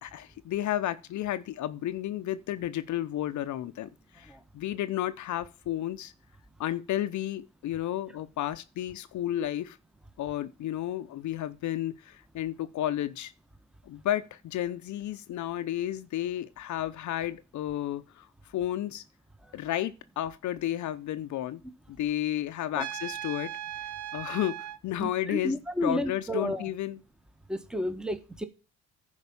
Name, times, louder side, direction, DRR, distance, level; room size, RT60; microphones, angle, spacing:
voice 1, 0.0-6.1 6.6-9.8 10.2-13.3 13.9-18.3 18.5-19.0 19.5-21.6 21.9-23.5 24.1-27.0, left 12 dB, 70° left, 0.7 m, -32 dB
Trumpet, 22.8-24.8, right 12 dB, 65° right, 0.7 m, -38 dB
voice 2, 25.0-26.7 27.5-28.4, left 1 dB, ahead, 1.2 m, -31 dB
11.0 x 4.9 x 7.1 m
cardioid pair, 90°, 30 cm